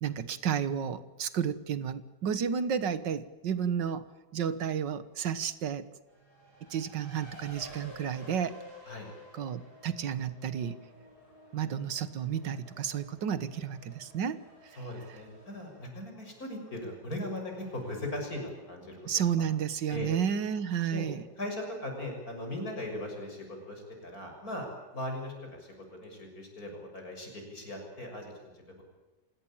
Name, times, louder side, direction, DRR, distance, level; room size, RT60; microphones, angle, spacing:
voice 1, 0.0-4.0 4.3-5.9 6.7-8.6 9.3-10.8 11.5-14.4 19.1-21.2, right 8 dB, 85° right, 14 dB, 1.9 m, -32 dB
Race car auto racing, 6.1-25.2, left 1 dB, 60° right, 8.8 m, -55 dB
voice 2, 14.8-19.0 19.9-20.1 20.9-21.1 21.4-24.7 24.9-28.8, left 1 dB, 55° left, 2 dB, 7.2 m, -39 dB
28.0 x 17.5 x 8.9 m, 1.1 s
omnidirectional pair, 1.9 m